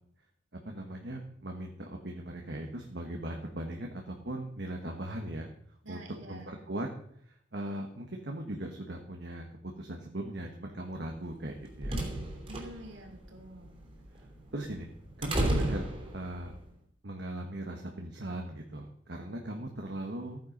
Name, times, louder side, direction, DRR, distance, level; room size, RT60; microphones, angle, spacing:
voice 1, 0.6-5.5 5.9-6.0 6.3-6.9 7.2-12.0 14.5-14.9 15.2-15.9 16.1-16.6 17.0-20.4, right 1 dB, 55° right, 2 dB, 1.5 m, -39 dB
voice 2, 5.8-6.6 12.4-13.8, right 1 dB, 75° right, 4 dB, 2.9 m, -47 dB
sound 1, 11.3-16.6, right 1 dB, 30° right, 3.0 m, -34 dB
14.5 x 9.4 x 5.4 m, 0.66 s
head